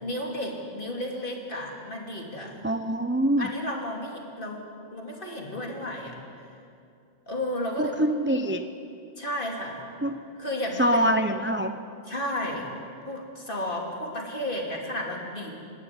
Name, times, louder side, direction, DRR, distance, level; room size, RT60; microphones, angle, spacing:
voice 1, 0.0-2.5 3.4-4.7 4.9-6.5 7.3-8.0 9.2-9.9 10.4-11.1 12.0-12.7 13.0-15.6, left 1 dB, 45° left, 0 dB, 3.3 m, -33 dB
voice 2, 2.6-3.5 7.8-8.7 10.0-10.1 10.8-11.8, equal, 15° right, 7 dB, 0.6 m, -24 dB
26.5 x 12.0 x 9.7 m, 2.5 s
omnidirectional pair, 1.2 m